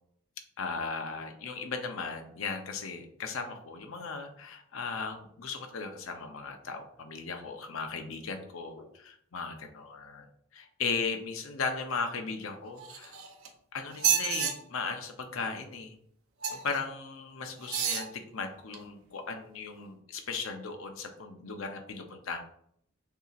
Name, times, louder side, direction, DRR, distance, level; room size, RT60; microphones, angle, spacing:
voice 1, 0.6-10.2 10.5-13.1 13.7-15.9 16.5-22.4, left 4 dB, 75° left, 5 dB, 0.7 m, -37 dB
sound 1, 12.8-13.5 13.9-14.5 16.4-16.8 17.6-18.1 18.7-18.8, right 8 dB, 90° right, 0.7 m, -29 dB
6.9 x 2.8 x 2.5 m, 0.68 s
head